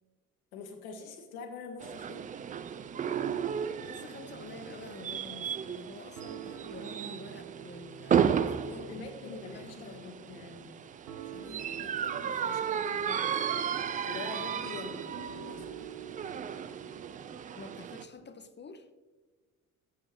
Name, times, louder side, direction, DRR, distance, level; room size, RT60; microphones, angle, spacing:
voice 1, 0.5-2.3 8.7-10.7 11.3-13.5 14.0-15.9, left 4 dB, 75° left, 1.3 m, -45 dB
sound 1, 1.8-18.0, right 8 dB, 20° right, 0.3 m, -34 dB
sound 2, 3.2-4.3 4.6-5.0 5.4-5.8 6.2-17.1, right 8 dB, 75° right, 0.8 m, -48 dB
voice 2, 3.6-10.4 17.6-18.9, left 4 dB, 25° left, 0.7 m, -49 dB
12.0 x 7.5 x 3.1 m
figure-of-eight pair, 45°, 44 cm